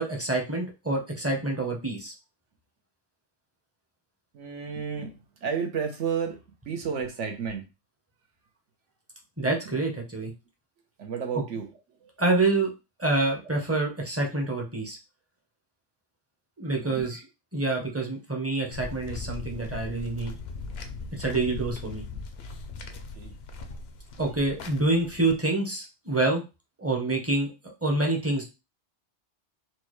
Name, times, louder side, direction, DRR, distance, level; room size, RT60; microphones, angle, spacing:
voice 1, 0.0-2.1 9.4-10.3 12.2-12.7 13.0-15.0 16.6-17.2 17.5-20.3 21.1-22.0 24.2-26.4 26.8-27.5 27.8-28.4, right 2 dB, 15° right, 0.6 m, -27 dB
voice 2, 4.3-7.7 11.0-11.7 12.0-12.1 13.4-13.5 16.6-17.2 23.1-23.3, right 6 dB, 70° right, 1.1 m, -32 dB
sound 1, 18.7-25.3, left 3 dB, 65° left, 0.7 m, -39 dB
4.2 x 2.2 x 3.1 m
omnidirectional pair, 1.3 m